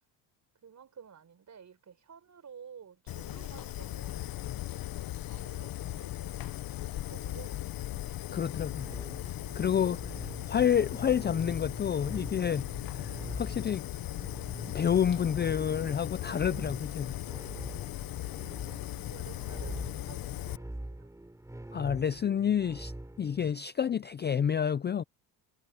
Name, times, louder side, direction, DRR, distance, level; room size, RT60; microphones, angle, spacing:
voice 1, 0.6-6.4 6.8-7.9 9.5-9.9 17.9-21.1, right 7 dB, 35° right, 5.6 m, -53 dB
Fire, 3.1-20.6, left 14 dB, 45° left, 0.9 m, -38 dB
voice 2, 8.3-8.9 9.6-10.0 10.5-13.1 13.4-13.9 14.7-17.1 21.7-22.9 23.2-25.0, left 8 dB, 20° left, 0.5 m, -29 dB
sound 1, 8.7-23.5, right 1 dB, 5° right, 6.2 m, -45 dB
supercardioid pair, 105°, 49 cm